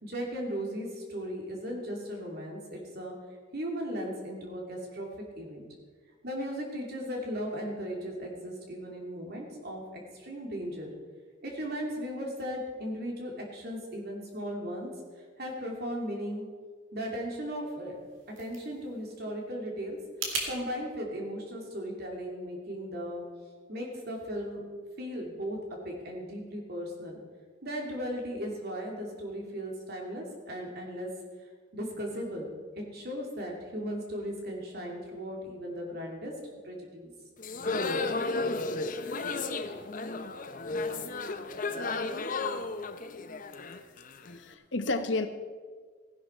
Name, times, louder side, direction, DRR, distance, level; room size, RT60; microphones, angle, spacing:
voice 1, 0.0-3.1 3.5-5.1 5.4-5.6 6.2-10.9 11.4-14.9 15.4-16.5 16.9-18.0 18.4-23.2 23.7-24.6 25.0-25.6 25.8-27.2 27.6-31.1 31.7-36.3 36.6-37.1, equal, 55° right, 0 dB, 2.8 m, -37 dB
sound 1, 17.9-20.5, right 3 dB, 75° right, 2.5 m, -39 dB
sound 2, 37.4-44.4, left 3 dB, 45° left, 0.7 m, -33 dB
voice 2, 44.2-45.3, left 2 dB, 65° left, 9 dB, 1.0 m, -31 dB
15.5 x 11.0 x 4.4 m, 1.5 s
head